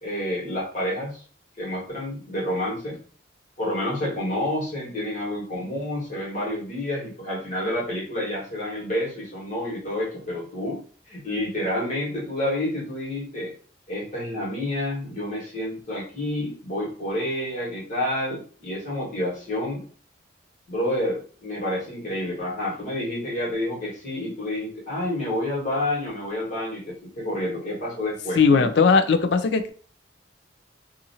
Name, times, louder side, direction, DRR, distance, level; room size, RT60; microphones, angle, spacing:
voice 1, 0.0-1.2 1.6-3.0 3.6-13.5 13.9-19.8 20.7-28.7, left 1 dB, 40° left, -5 dB, 1.4 m, -29 dB
voice 2, 28.4-29.7, left 5 dB, 60° left, 9 dB, 0.3 m, -18 dB
2.8 x 2.5 x 2.7 m, 0.41 s
head